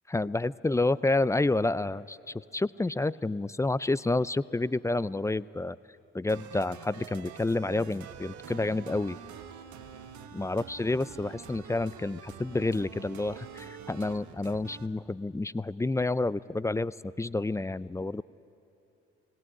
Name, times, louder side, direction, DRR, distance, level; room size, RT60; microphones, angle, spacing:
voice 1, 0.1-2.2 2.5-5.8 6.1-9.2 10.3-18.2, left 2 dB, 10° left, 19 dB, 0.4 m, -29 dB
sound 1, 6.3-14.9, right 8 dB, 70° right, 1.2 m, -46 dB
18.5 x 17.5 x 9.6 m, 2.8 s
hypercardioid pair, 45°, 30 cm